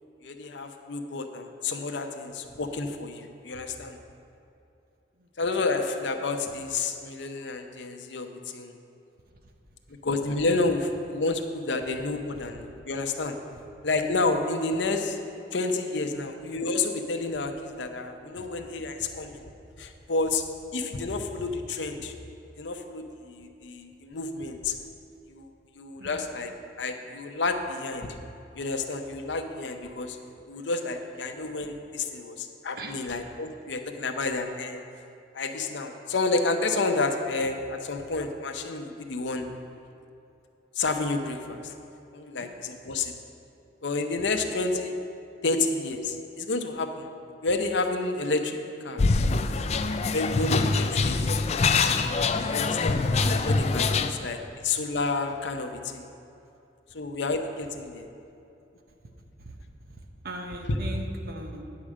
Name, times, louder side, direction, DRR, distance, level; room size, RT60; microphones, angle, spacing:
voice 1, 0.2-4.0 5.4-8.8 10.0-13.4 13.8-15.2 15.5-19.4 19.8-20.4 20.7-22.1 22.6-24.8 25.3-25.5 25.7-26.5 26.8-28.2 28.6-30.2 30.5-34.8 35.3-39.5 40.8-41.7 42.1-43.1 43.8-44.9 45.4-47.1 47.4-49.0 50.1-53.0 53.4-54.4 54.6-56.1 56.9-58.1, left 3 dB, 80° left, 5 dB, 0.7 m, -30 dB
voice 2, 32.7-33.1 42.4-42.5 50.8-50.9 54.0-54.2 59.4-59.6 59.8-61.6, right 1 dB, 55° right, 4 dB, 0.9 m, -41 dB
sound 1, 49.0-54.1, left 4 dB, 35° left, 0.4 m, -24 dB
9.6 x 5.0 x 7.4 m, 2.7 s
head